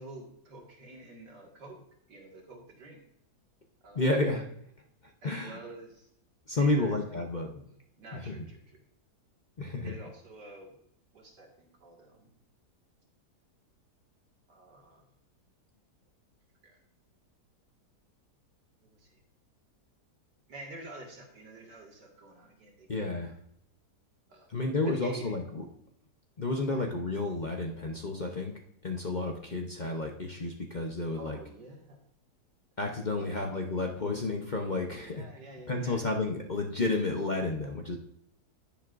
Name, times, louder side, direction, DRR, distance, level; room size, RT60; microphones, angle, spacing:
voice 1, 0.0-1.8 2.1-3.0 3.8-4.2 5.2-6.1 6.5-7.3 8.0-8.8 9.8-10.8 11.1-12.4 14.5-15.1 16.6-16.8 18.8-19.2 20.5-23.3 24.3-24.5 24.8-25.4 26.7-26.8 31.1-32.0 33.2-33.5 35.0-36.0, right 2 dB, 90° right, 0 dB, 2.6 m, -49 dB
voice 2, 4.0-4.5 5.2-5.6 6.5-7.6 8.1-8.4 9.6-9.9 22.9-23.3 24.5-25.6 26.4-28.5 28.8-31.4 32.8-35.2 35.7-38.0, left 2 dB, 35° left, 2 dB, 0.8 m, -31 dB
10.0 x 10.0 x 2.6 m, 0.71 s
omnidirectional pair, 1.8 m